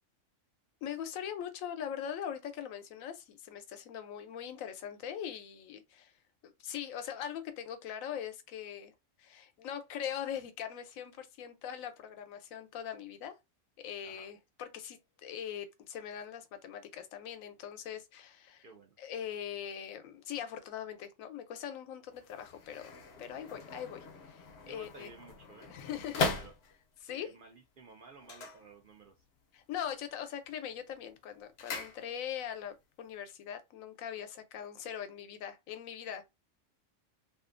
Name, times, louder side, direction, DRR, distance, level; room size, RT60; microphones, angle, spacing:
voice 1, 0.8-6.1 6.4-8.9 9.2-13.4 13.8-18.6 19.0-22.9 23.2-25.1 25.7-26.3 27.0-27.3 29.5-36.2, left 9 dB, 85° left, 1.0 m, -41 dB
voice 2, 18.6-19.0 24.6-26.5 27.1-29.1, right 4 dB, 55° right, 0.6 m, -54 dB
sound 1, 22.1-27.1 28.2-29.3 29.6-30.1 30.4-32.5 32.8-32.9, left 3 dB, 65° left, 0.8 m, -40 dB
2.5 x 2.4 x 2.4 m
omnidirectional pair, 1.4 m